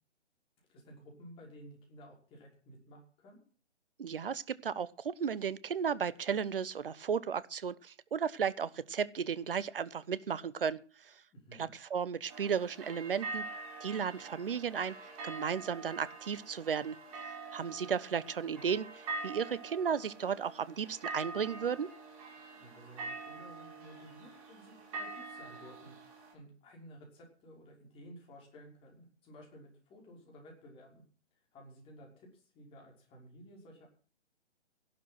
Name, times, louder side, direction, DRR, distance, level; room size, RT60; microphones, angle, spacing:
voice 1, 0.6-3.4 11.3-11.7 22.5-25.9 26.3-31.0 31.5-33.9, equal, 15° left, 0 dB, 5.8 m, -54 dB
voice 2, 4.0-11.2 11.6-13.5 13.8-14.9 15.2-17.0 17.5-21.9, right 7 dB, 50° right, 18 dB, 1.1 m, -34 dB
sound 1, 12.3-26.3, right 3 dB, 30° right, 5.7 m, -45 dB
15.5 x 12.0 x 6.1 m, 0.42 s
figure-of-eight pair, 135°, 35 cm